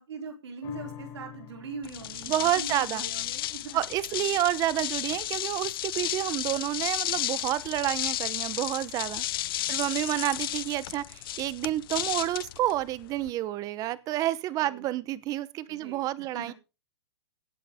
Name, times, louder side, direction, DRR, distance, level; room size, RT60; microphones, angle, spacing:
voice 1, 0.0-3.8 9.7-10.0 14.6-14.8 15.7-16.5, right 4 dB, 75° right, 3.8 m, -41 dB
sound 1, 0.6-7.3 7.7-7.8, left 9 dB, 35° left, 3.8 m, -50 dB
sound 2, 1.8-13.3, left 14 dB, 55° left, 0.5 m, -33 dB
voice 2, 2.3-3.1 3.7-9.2 9.7-16.5, right 14 dB, 25° right, 0.9 m, -29 dB
17.5 x 9.6 x 3.7 m
hypercardioid pair, 145°, 14 cm